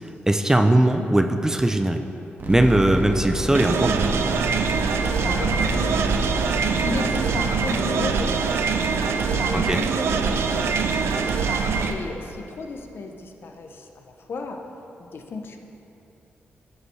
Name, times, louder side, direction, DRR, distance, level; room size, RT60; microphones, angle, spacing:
voice 1, 0.3-2.0 2.5-4.0 9.5-9.8, right 1 dB, 15° right, 6 dB, 0.4 m, -19 dB
sound 1, 2.4-7.8, right 1 dB, 50° right, 1.2 m, -30 dB
sound 2, 3.5-11.9, right 5 dB, 85° right, 0.4 m, -23 dB
voice 2, 4.9-11.3 11.6-14.7 15.0-15.6, left 3 dB, 65° left, 4 dB, 0.7 m, -35 dB
13.0 x 5.2 x 3.2 m, 3.0 s
cardioid pair, 85°, 4 cm